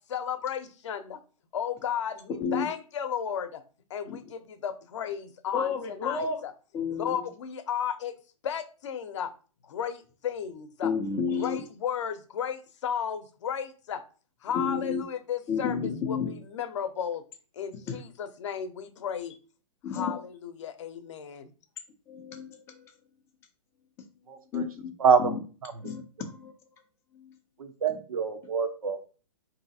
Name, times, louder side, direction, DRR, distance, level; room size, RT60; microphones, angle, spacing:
voice 1, 0.1-1.2 1.5-3.6 3.9-6.5 6.9-8.1 8.4-9.3 9.6-10.9 11.4-14.0 14.4-17.2 17.6-19.4 19.9-21.5, left 8 dB, 55° left, 8 dB, 0.7 m, -34 dB
voice 2, 5.5-6.4 6.7-7.3 10.8-11.7 14.5-15.0 15.5-16.4 17.9-18.0 19.8-20.2 22.1-22.9 24.0-24.1 24.5-24.9 25.2-25.4 25.8-26.5 27.1-27.3 27.9-28.0, left 5 dB, 15° left, 4 dB, 0.4 m, -31 dB
voice 3, 24.3-24.6 25.0-25.3 27.6-29.0, right 6 dB, 75° right, 6 dB, 0.8 m, -25 dB
3.9 x 2.8 x 2.6 m, 0.36 s
hypercardioid pair, 140°, 18 cm